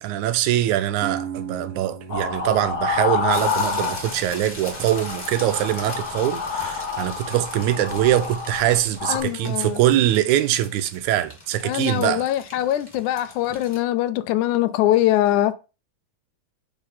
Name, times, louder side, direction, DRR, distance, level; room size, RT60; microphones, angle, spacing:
voice 1, 0.0-12.2, right 12 dB, 85° right, 2.0 m, -23 dB
sound 1, 1.0-6.8, right 6 dB, 35° right, 1.2 m, -39 dB
sound 2, 2.1-4.4 4.6-9.2, left 5 dB, 35° left, 2.0 m, -28 dB
sound 3, 3.3-13.8, left 1 dB, 10° left, 1.8 m, -40 dB
voice 2, 9.1-9.8 11.6-15.5, left 13 dB, 85° left, 2.1 m, -22 dB
5.3 x 4.1 x 5.6 m
omnidirectional pair, 3.4 m